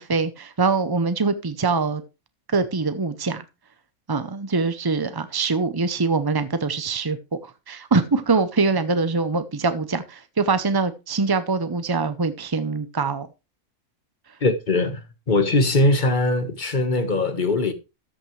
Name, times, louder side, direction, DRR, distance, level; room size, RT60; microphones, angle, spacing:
voice 1, 0.0-2.0 2.5-3.4 4.1-7.2 7.4-13.3, right 4 dB, 30° right, 0.4 m, -23 dB
voice 2, 14.4-15.0 15.3-17.7, left 2 dB, 35° left, 1.4 m, -21 dB
13.5 x 8.8 x 3.2 m
omnidirectional pair, 1.5 m